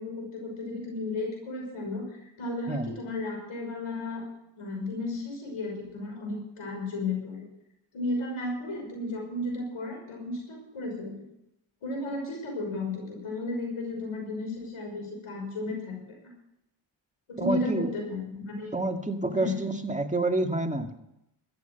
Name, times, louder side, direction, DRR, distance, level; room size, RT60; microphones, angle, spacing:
voice 1, 0.0-4.3 4.6-7.5 7.9-11.1 11.8-16.2 17.3-18.7 19.3-19.6, left 2 dB, 90° left, 1 dB, 6.0 m, -34 dB
voice 2, 17.4-17.9 18.7-21.1, right 2 dB, 15° right, 4 dB, 2.0 m, -28 dB
14.0 x 9.3 x 7.9 m, 0.82 s
cardioid pair, 50°, 48 cm